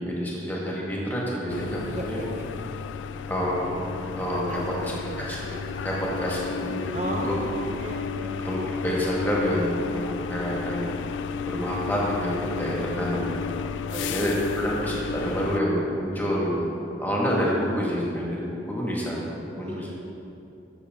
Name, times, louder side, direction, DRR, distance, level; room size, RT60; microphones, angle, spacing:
voice 1, 0.0-2.2 3.3-3.7 4.1-4.9 5.3-5.4 5.8-6.4 6.7-7.3 7.6-7.7 8.4-11.0 11.4-13.3 14.0-16.7 17.0-19.9, equal, 10° left, -5 dB, 1.7 m, -28 dB
sound 1, 1.5-15.6, left 6 dB, 75° left, 0.3 m, -33 dB
voice 2, 1.9-2.6 4.4-5.3 6.9-8.4 13.9-14.3 19.6-19.9, right 1 dB, 35° right, 1 dB, 0.9 m, -35 dB
13.0 x 6.6 x 3.7 m, 2.8 s
head